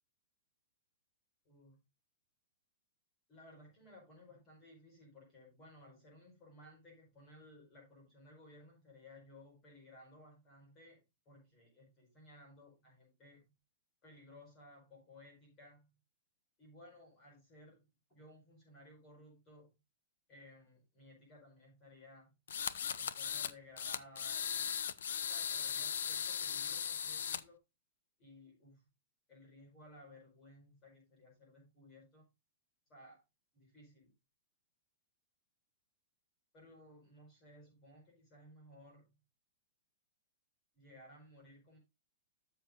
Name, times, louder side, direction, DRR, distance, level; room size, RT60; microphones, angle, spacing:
voice 1, 1.4-1.8 3.3-13.5 14.0-16.0 16.6-17.8 18.1-19.8 20.3-22.3 23.0-24.8 25.2-27.6 28.2-28.9 29.3-32.3 32.9-33.2 33.5-34.1 36.5-39.1 40.7-41.8, left 1 dB, 15° left, 5.1 m, -59 dB
sound 1, 22.5-23.5 23.8-27.4, left 8 dB, 80° left, 0.7 m, -38 dB
13.0 x 7.1 x 2.6 m
supercardioid pair, 180°, 0 cm